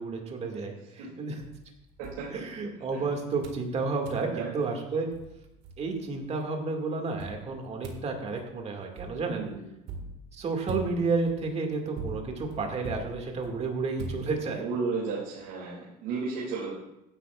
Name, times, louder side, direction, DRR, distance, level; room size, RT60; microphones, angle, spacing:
voice 1, 0.0-1.4 2.3-5.1 5.8-9.5 10.3-14.7, right 4 dB, 30° right, 2 dB, 2.1 m, -31 dB
sound 1, 1.4-3.0 3.4-3.7 4.0-4.3 4.8-4.9 5.1-6.2 7.2-14.8, right 3 dB, 55° right, 1.9 m, -43 dB
voice 2, 4.1-4.6 9.2-9.7 14.6-16.7, right 4 dB, 75° right, -5 dB, 2.7 m, -34 dB
15.0 x 10.5 x 2.5 m, 0.90 s
cardioid pair, 135°, 20 cm